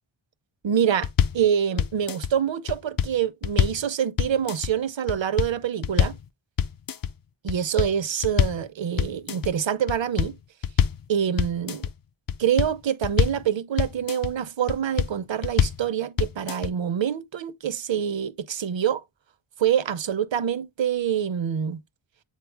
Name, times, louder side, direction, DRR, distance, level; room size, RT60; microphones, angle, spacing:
voice 1, 0.6-1.1 1.3-6.2 7.4-10.4 11.1-11.9 12.4-19.0 19.6-21.8, right 9 dB, 65° right, 0.7 m, -26 dB
sound 1, 1.0-1.4 1.8-2.3 2.7-3.8 4.2-4.7 5.1-5.5 5.8-6.2 6.6-7.1 7.5-8.6 9.0-9.5 9.9-11.0 11.4-11.9 12.3-13.4 13.8-14.3 14.7-15.1 15.4-15.8 16.2-16.7, left 8 dB, 45° left, 0.5 m, -24 dB
8.3 x 4.1 x 3.3 m
wide cardioid pair, 105°, 49 cm